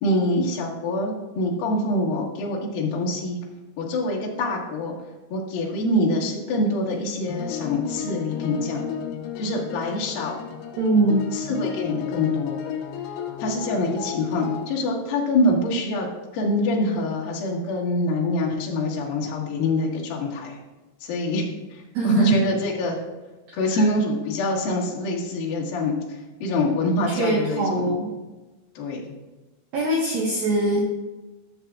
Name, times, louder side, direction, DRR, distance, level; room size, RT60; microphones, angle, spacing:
voice 1, 0.0-3.4 3.8-4.9 5.3-8.8 9.4-10.4 11.3-12.6 13.4-16.1 16.3-20.6 21.0-21.4 21.7-23.0 23.5-25.9 26.4-27.9 28.8-29.0, left 1 dB, 60° left, -4 dB, 2.8 m, -25 dB
sound 1, 7.3-14.7, left 9 dB, 80° left, 2.4 m, -33 dB
voice 2, 10.8-11.3 21.9-22.4 23.5-23.8 27.1-28.1 29.7-30.8, right 2 dB, 75° right, -2 dB, 2.2 m, -22 dB
15.0 x 7.1 x 2.4 m, 1.1 s
omnidirectional pair, 5.8 m